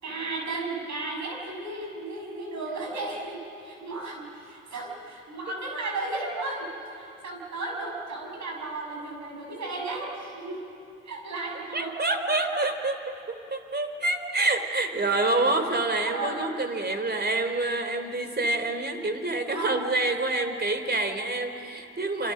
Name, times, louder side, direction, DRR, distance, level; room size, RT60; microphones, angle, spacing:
voice 1, 0.0-10.6 11.0-11.9 16.1-16.4 19.5-19.8, right 2 dB, 65° right, 0 dB, 6.7 m, -34 dB
voice 2, 11.7-12.9 13.3-22.3, right 2 dB, 35° right, 7 dB, 3.3 m, -27 dB
27.0 x 27.0 x 6.7 m, 2.7 s
supercardioid pair, 50°, 30 cm